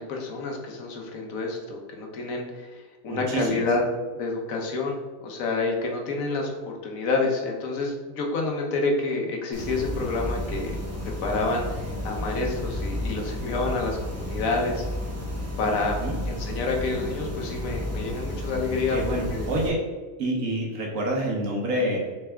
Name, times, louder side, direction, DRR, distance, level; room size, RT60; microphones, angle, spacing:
voice 1, 0.0-3.8 4.1-10.7 11.0-14.8 15.6-16.0 16.4-19.5, left 3 dB, 85° left, 1 dB, 1.3 m, -28 dB
voice 2, 3.1-3.6 16.0-16.1 18.9-19.8 20.2-22.0, right 1 dB, 75° right, -2 dB, 1.3 m, -27 dB
sound 1, 9.5-19.7, left 1 dB, 15° right, 0.6 m, -32 dB
4.0 x 3.4 x 3.4 m, 1.3 s
omnidirectional pair, 1.4 m